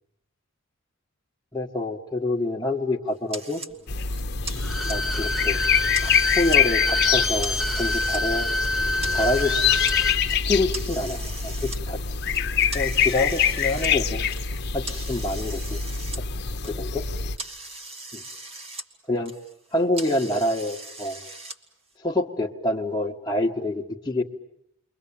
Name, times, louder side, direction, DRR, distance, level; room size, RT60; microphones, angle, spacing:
voice 1, 1.5-3.6 4.9-5.6 6.0-8.5 9.1-9.6 10.3-12.0 12.7-14.3 14.7-15.8 16.6-17.0 18.1-18.2 19.1-19.3 19.7-21.2 22.0-24.2, left 2 dB, 15° left, -6 dB, 1.4 m, -27 dB
sound 1, 3.3-3.7 4.1-5.2 5.6-6.6 7.0-8.2 8.6-10.0 10.3-11.8 12.3-16.2 16.5-18.9 19.1-21.6, right 2 dB, 30° right, 1.7 m, -39 dB
sound 2, 3.9-17.4, left 7 dB, 55° left, 1.0 m, -25 dB
Bowed string instrument, 4.6-10.2 10.5-10.6, left 2 dB, ahead, 1.2 m, -26 dB
29.5 x 23.0 x 8.7 m, 0.78 s
head